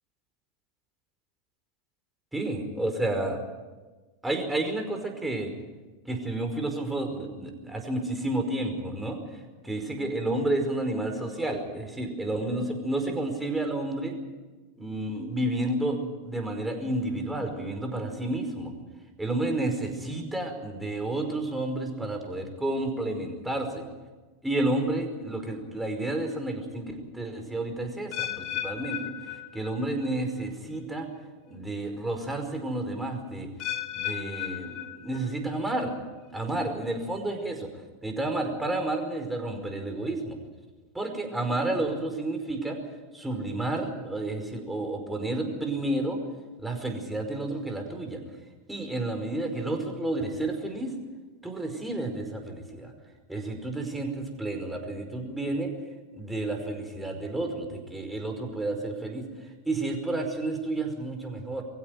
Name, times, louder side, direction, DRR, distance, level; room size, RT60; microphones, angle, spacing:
voice 1, 2.3-3.4 4.2-5.5 6.1-9.2 9.6-14.1 14.8-16.0 16.2-18.7 19.2-23.8 24.4-29.0 29.5-31.1 31.5-33.5 34.0-35.9 36.3-37.7 38.0-40.4 40.9-42.8 43.1-46.2 46.6-48.2 48.7-50.9 51.4-52.9 53.3-55.7 56.1-59.2 59.7-61.6, right 2 dB, 10° right, 4 dB, 5.1 m, -30 dB
sound 1, 28.1-30.1 30.4-30.8 31.5-31.6 33.6-35.6 35.9-36.3 37.0-37.1, left 12 dB, 50° left, 2.2 m, -35 dB
23.5 x 16.0 x 9.5 m, 1.3 s
hypercardioid pair, 90°, 0 cm